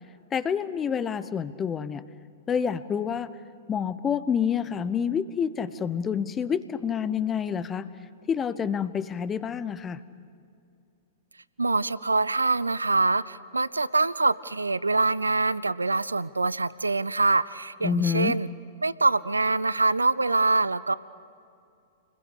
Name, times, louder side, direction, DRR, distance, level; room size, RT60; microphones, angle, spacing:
voice 1, 0.3-2.0 2.5-3.3 3.7-7.9 8.3-10.0 17.8-18.4, left 7 dB, 20° left, 13 dB, 1.1 m, -28 dB
voice 2, 11.6-18.5 18.8-20.9, right 3 dB, 85° right, 18 dB, 0.6 m, -24 dB
29.5 x 21.5 x 6.8 m, 2.4 s
figure-of-eight pair, 105°, 0 cm